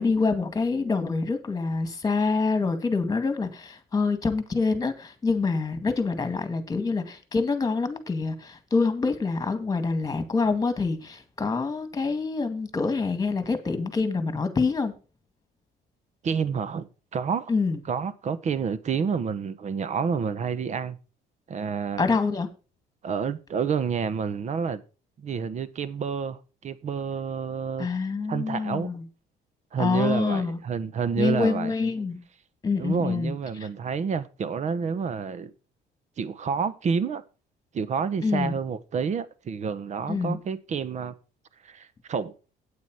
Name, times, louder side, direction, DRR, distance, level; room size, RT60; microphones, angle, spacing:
voice 1, 0.0-14.9 17.5-17.8 22.0-22.5 27.8-29.0 29.8-30.6 31.2-32.2 32.6-33.3 38.2-38.6 40.1-40.4, left 4 dB, 20° left, 1.9 m, -26 dB
voice 2, 16.2-17.5 17.9-21.0 21.5-22.0 23.0-24.8 25.2-27.9 28.3-28.9 29.7-31.7 32.8-35.5 36.2-37.2 37.7-41.1 41.6-42.3, right 6 dB, 45° right, 1.0 m, -29 dB
8.8 x 8.4 x 4.8 m
cardioid pair, 110°, 17 cm